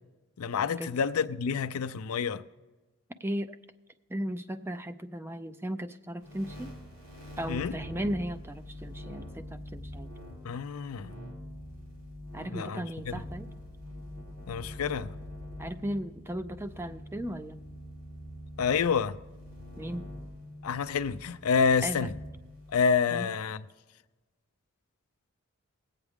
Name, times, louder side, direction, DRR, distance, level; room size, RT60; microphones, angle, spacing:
voice 1, 0.4-2.4 7.5-7.7 10.4-11.1 12.5-13.2 14.5-15.1 18.6-19.2 20.6-22.1 22.7-23.6, left 6 dB, 80° left, 0.5 m, -28 dB
voice 2, 3.2-3.6 4.1-6.7 7.4-10.1 12.3-13.5 15.6-17.6 19.8-20.0 21.8-22.0 23.1-23.3, equal, 10° right, 0.4 m, -36 dB
sound 1, 6.2-22.8, left 1 dB, 70° right, 3.4 m, -44 dB
20.0 x 8.2 x 3.6 m
head